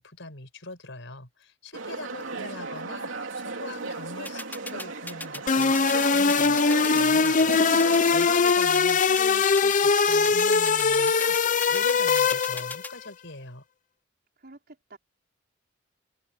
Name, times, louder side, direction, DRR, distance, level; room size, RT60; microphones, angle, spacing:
voice 1, 0.0-13.6, left 2 dB, 65° left, 6.1 m, -42 dB
sound 1, 1.7-8.5, right 3 dB, 75° right, 3.2 m, -36 dB
voice 2, 1.9-2.6 14.4-15.0, right 2 dB, 55° right, 4.7 m, -50 dB
sound 2, 4.3-12.9, left 2 dB, 10° left, 4.8 m, -37 dB
sound 3, 5.5-12.9, left 5 dB, 40° left, 0.6 m, -21 dB
open air
head